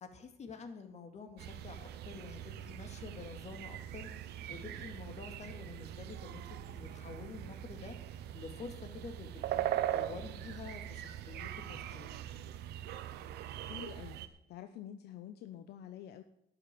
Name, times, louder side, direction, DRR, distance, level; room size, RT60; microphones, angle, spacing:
voice 1, 0.0-4.1 4.5-8.0 8.3-12.1, left 5 dB, 40° left, 6 dB, 2.3 m, -48 dB
sound 1, 1.4-14.3, right 12 dB, 75° right, 0.9 m, -41 dB
voice 2, 13.6-16.2, left 11 dB, 75° left, 9 dB, 0.8 m, -48 dB
12.0 x 7.1 x 9.4 m, 0.78 s
cardioid pair, 110°, 17 cm